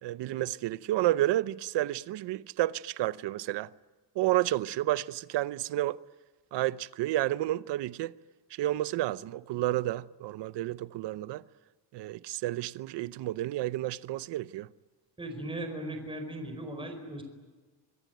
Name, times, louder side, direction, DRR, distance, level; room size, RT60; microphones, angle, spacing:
voice 1, 0.0-3.7 4.2-6.0 6.5-8.1 8.5-11.4 11.9-14.7, right 15 dB, 70° right, 0.8 m, -30 dB
voice 2, 15.2-17.2, right 1 dB, 10° right, 4.7 m, -38 dB
25.0 x 22.5 x 9.2 m
cardioid pair, 160°, 43 cm